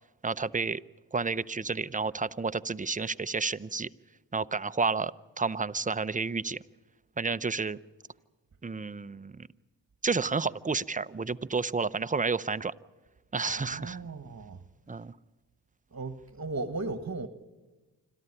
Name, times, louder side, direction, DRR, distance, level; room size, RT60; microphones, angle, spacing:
voice 1, 0.2-0.8 1.1-3.9 4.3-6.6 7.2-7.8 8.6-9.5 10.0-12.7 13.3-14.0 14.9-15.1, right 4 dB, 20° right, 0.6 m, -31 dB
voice 2, 13.5-14.6 15.9-17.3, right 3 dB, 40° right, 1.5 m, -36 dB
26.5 x 13.5 x 9.9 m
cardioid pair, 45°, 43 cm